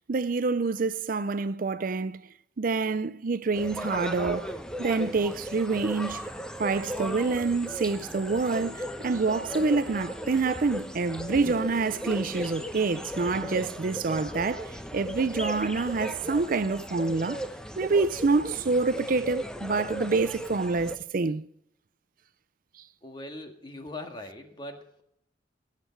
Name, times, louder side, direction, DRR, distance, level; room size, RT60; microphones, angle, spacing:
voice 1, 0.0-2.3 2.6-6.2 6.6-17.4 17.8-21.5, right 4 dB, 50° right, 0.5 m, -27 dB
sound 1, 3.5-21.0, equal, 5° left, 0.8 m, -37 dB
voice 2, 23.0-25.0, left 1 dB, 25° left, 1.8 m, -41 dB
18.0 x 8.3 x 4.6 m
head